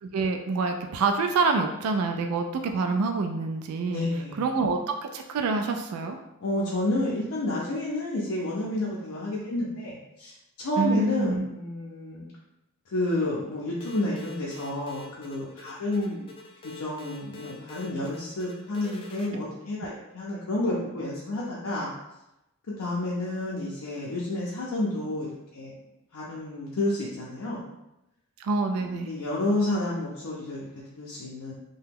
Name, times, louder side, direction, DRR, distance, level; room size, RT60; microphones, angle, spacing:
voice 1, 0.0-4.1 4.4-6.2 10.8-11.5 28.4-29.1, right 4 dB, 80° right, 5 dB, 0.3 m, -26 dB
voice 2, 3.9-4.4 6.4-10.3 10.6-12.2 12.9-16.3 16.6-21.9 22.8-25.3 25.5-25.7 26.1-27.6 28.8-31.5, left 1 dB, 80° left, -5 dB, 0.5 m, -30 dB
sound 1, 13.8-19.3, left 3 dB, 25° left, 0.4 m, -45 dB
2.8 x 2.2 x 3.5 m, 0.90 s
head